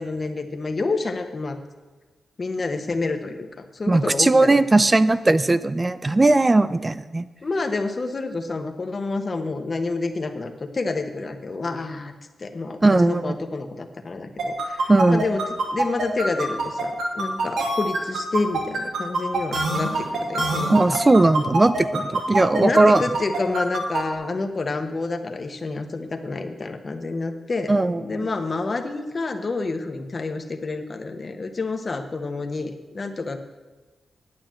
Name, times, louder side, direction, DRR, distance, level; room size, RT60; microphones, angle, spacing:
voice 1, 0.0-1.6 2.4-4.6 7.4-12.1 12.4-15.4 15.7-21.0 22.6-33.4, left 3 dB, 40° left, 7 dB, 1.2 m, -28 dB
voice 2, 3.9-7.3 12.8-13.4 14.9-15.2 20.7-23.0 27.7-28.0, right 2 dB, 25° right, 14 dB, 0.5 m, -18 dB
sound 1, 14.4-24.0, right 2 dB, 85° right, 2.6 m, -25 dB
9.6 x 8.7 x 7.6 m, 1.3 s
cardioid pair, 90°, 0 cm